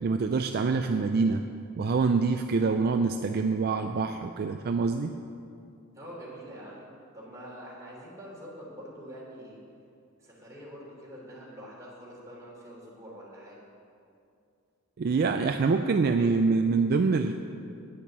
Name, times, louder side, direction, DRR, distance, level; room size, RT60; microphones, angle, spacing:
voice 1, 0.0-1.4 1.8-5.1 15.0-17.3, right 4 dB, 45° right, 6 dB, 0.4 m, -25 dB
voice 2, 5.9-6.9 7.1-9.6 10.2-13.6, equal, 15° right, -6 dB, 3.1 m, -45 dB
10.0 x 6.7 x 7.3 m, 2.5 s
head